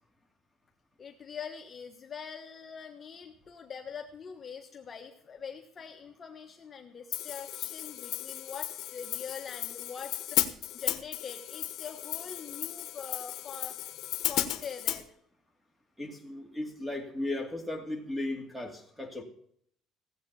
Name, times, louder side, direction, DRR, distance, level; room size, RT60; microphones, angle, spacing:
voice 1, 1.0-13.9 14.3-15.1, left 6 dB, 30° left, 3 dB, 1.3 m, -44 dB
Hi-hat, 7.1-15.0, left 13 dB, 65° left, 1.2 m, -34 dB
voice 2, 16.0-19.2, left 2 dB, 5° right, 5 dB, 2.6 m, -36 dB
16.5 x 8.2 x 6.9 m, 0.64 s
cardioid pair, 140°, 0 cm